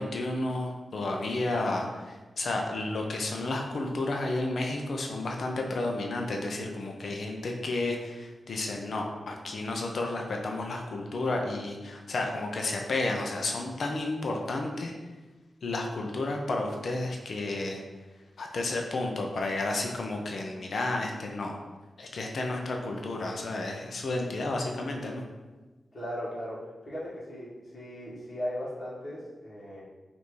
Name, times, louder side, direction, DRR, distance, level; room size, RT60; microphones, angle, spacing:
voice 1, 0.0-14.9 15.6-17.8 18.4-21.5 22.0-25.2, left 2 dB, 60° left, 2 dB, 0.5 m, -32 dB
voice 2, 25.9-29.8, equal, 35° left, -8 dB, 1.4 m, -37 dB
5.3 x 2.6 x 3.1 m, 1.2 s
wide cardioid pair, 135°, 0 cm